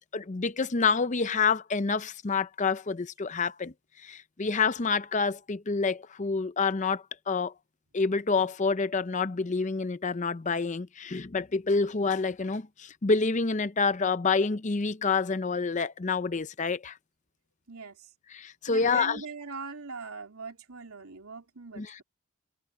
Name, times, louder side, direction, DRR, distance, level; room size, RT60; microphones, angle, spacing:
voice 1, 0.1-3.7 4.0-7.5 7.9-17.0 18.3-19.2 21.8-22.0, left 4 dB, 35° left, 0.6 m, -28 dB
voice 2, 17.7-18.1 18.7-22.0, right 4 dB, 75° right, 2.9 m, -41 dB
head